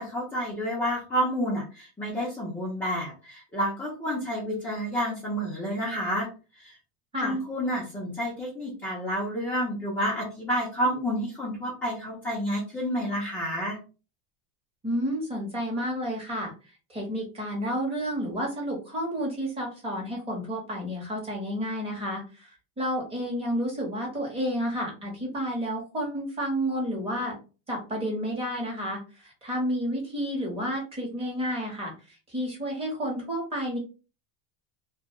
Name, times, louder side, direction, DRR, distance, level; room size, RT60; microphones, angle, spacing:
voice 1, 0.0-6.3 6.5-6.8 7.2-13.8, equal, 5° left, -6 dB, 0.5 m, -29 dB
voice 2, 14.8-16.5 16.9-27.4 27.7-33.8, equal, 15° right, -1 dB, 0.9 m, -31 dB
2.3 x 2.2 x 2.9 m, 0.33 s
supercardioid pair, 160°, 41 cm